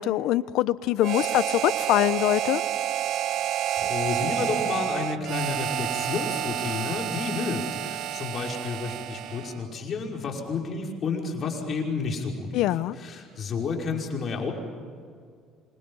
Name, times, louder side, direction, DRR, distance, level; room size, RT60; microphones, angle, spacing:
voice 1, 0.0-2.6 12.5-13.0, left 14 dB, 75° left, 17 dB, 0.7 m, -23 dB
Harmonica, 1.0-9.6, right 11 dB, 65° right, 0.7 m, -29 dB
voice 2, 3.8-12.7 13.0-14.5, left 4 dB, 45° left, 0 dB, 5.5 m, -31 dB
27.5 x 27.0 x 5.6 m, 2.1 s
supercardioid pair, 95°, 0 cm